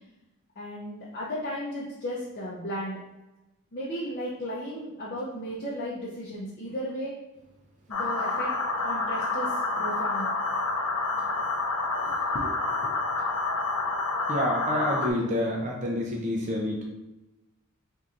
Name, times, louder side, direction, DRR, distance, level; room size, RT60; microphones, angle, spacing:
voice 1, 0.6-3.0 3.7-7.1 7.9-8.5 8.8-10.3 12.3-12.5 12.8-13.0, equal, 40° left, -6 dB, 0.7 m, -35 dB
sound 1, 7.9-15.1, left 3 dB, 80° left, 0.6 m, -28 dB
voice 2, 14.3-16.8, left 1 dB, 35° right, -1 dB, 0.5 m, -28 dB
4.3 x 3.6 x 2.5 m, 1.0 s
head